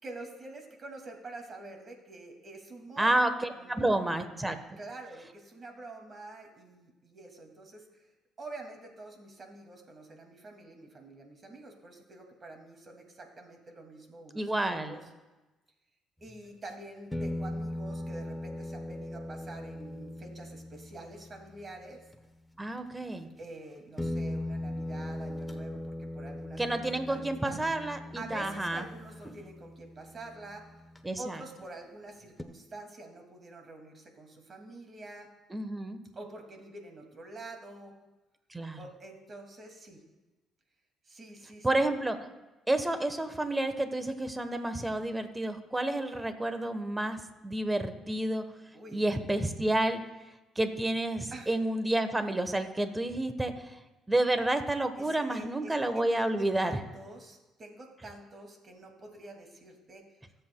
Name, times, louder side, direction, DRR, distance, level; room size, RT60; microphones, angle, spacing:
voice 1, 0.0-3.2 3.6-4.0 4.8-8.1 8.4-15.0 16.2-22.0 23.4-27.6 28.2-30.7 31.2-35.3 36.1-37.9 38.8-40.0 41.0-41.9 48.7-49.0 51.3-51.5 55.0-55.8 56.1-60.2, right 2 dB, 40° right, 3 dB, 2.3 m, -47 dB
voice 2, 3.0-4.8 14.3-15.0 22.6-23.3 26.6-28.8 29.2-29.3 31.0-31.4 35.5-36.0 38.5-38.8 41.6-42.2 42.7-48.4 48.9-50.0 50.6-53.7 54.1-56.8, right 1 dB, 15° right, 9 dB, 1.1 m, -30 dB
sound 1, 16.3-16.4 17.1-22.2 23.4-23.5 24.0-31.3 32.4-32.5, left 1 dB, 10° left, 0.9 m, -39 dB
23.0 x 7.8 x 2.3 m, 1.1 s
supercardioid pair, 75°, 0 cm